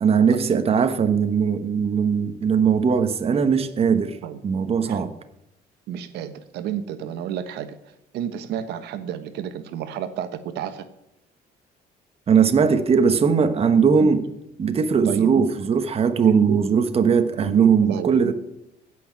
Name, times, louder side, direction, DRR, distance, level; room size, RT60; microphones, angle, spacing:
voice 1, 0.0-4.2 4.4-5.1 12.3-14.2 14.6-18.3, right 6 dB, 35° right, 1.2 m, -19 dB
voice 2, 5.9-7.8 8.1-10.8 14.0-14.2 15.0-15.4 16.3-16.7 17.4-18.3, right 9 dB, 80° right, 1.2 m, -31 dB
16.0 x 6.1 x 9.4 m
cardioid pair, 110°, 17 cm